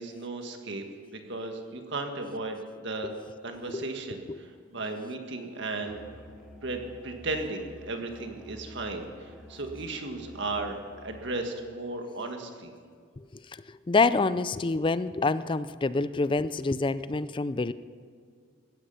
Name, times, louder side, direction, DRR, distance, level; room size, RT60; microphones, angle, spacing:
voice 1, 0.0-3.1 3.4-6.0 6.6-12.7, right 2 dB, 60° right, 4 dB, 1.8 m, -35 dB
Musical instrument, 5.8-11.3, equal, 5° right, 1.7 m, -49 dB
voice 2, 13.2-17.7, left 3 dB, 25° left, 15 dB, 0.4 m, -27 dB
16.5 x 13.0 x 5.7 m, 2.1 s
head